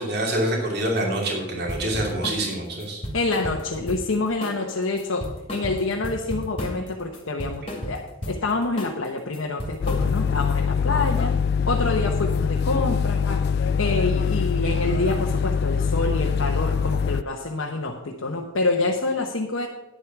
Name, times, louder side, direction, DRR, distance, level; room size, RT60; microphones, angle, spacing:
voice 1, 0.0-3.0, right 1 dB, 55° right, 0 dB, 2.8 m, -26 dB
sound 1, 1.7-2.4 2.8-4.1 4.4-4.7 5.0-6.9 7.1-8.4 8.8-9.0 9.3-10.4, equal, 25° left, 2.3 m, -33 dB
voice 2, 3.1-19.7, left 3 dB, 85° left, 0 dB, 1.0 m, -27 dB
sound 2, 9.8-17.2, left 6 dB, 55° left, 0.3 m, -23 dB
10.5 x 8.0 x 6.0 m, 1.1 s
head